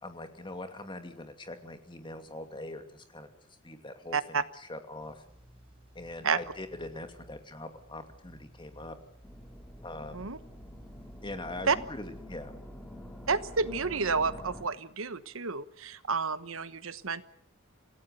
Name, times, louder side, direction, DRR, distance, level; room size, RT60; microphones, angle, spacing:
voice 1, 0.0-3.3 3.6-5.2 5.9-9.0 9.8-10.2 11.2-12.5, left 2 dB, 25° left, 7 dB, 2.6 m, -42 dB
voice 2, 4.1-4.4 6.2-6.4 10.1-10.4 11.7-11.8 13.3-17.2, right 5 dB, 80° right, 13 dB, 1.2 m, -30 dB
sound 1, 5.0-12.2, equal, 30° right, 3.3 m, -56 dB
sound 2, 9.2-14.6, equal, 5° left, 3.0 m, -47 dB
27.5 x 16.5 x 8.2 m, 0.65 s
head